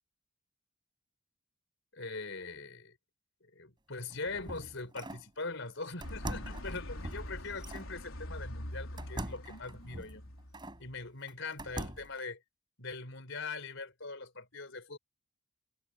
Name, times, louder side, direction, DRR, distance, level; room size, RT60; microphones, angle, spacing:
voice 1, 1.9-3.0 3.5-10.3 10.8-12.4 12.8-15.0, left 3 dB, 60° left, 5.1 m, -42 dB
sound 1, 3.9-5.3 6.0-7.9 9.0-10.8 11.3-12.2, right 1 dB, 20° right, 4.3 m, -43 dB
sound 2, 6.0-11.0, left 1 dB, 75° left, 3.8 m, -44 dB
head